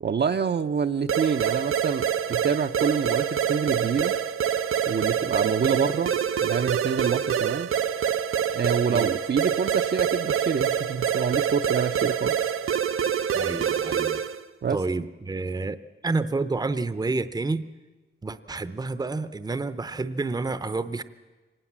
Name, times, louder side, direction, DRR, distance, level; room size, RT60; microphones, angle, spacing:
voice 1, 0.0-4.2 4.9-6.1 6.4-7.7 8.5-12.4 14.6-14.8, right 6 dB, 55° right, 8 dB, 0.7 m, -27 dB
sound 1, 1.1-14.4, right 8 dB, 85° right, 0.8 m, -26 dB
voice 2, 13.3-14.2 14.7-17.7 18.2-21.0, right 3 dB, 20° right, 13 dB, 0.7 m, -29 dB
24.5 x 19.0 x 7.4 m, 1.2 s
wide cardioid pair, 140°, 21 cm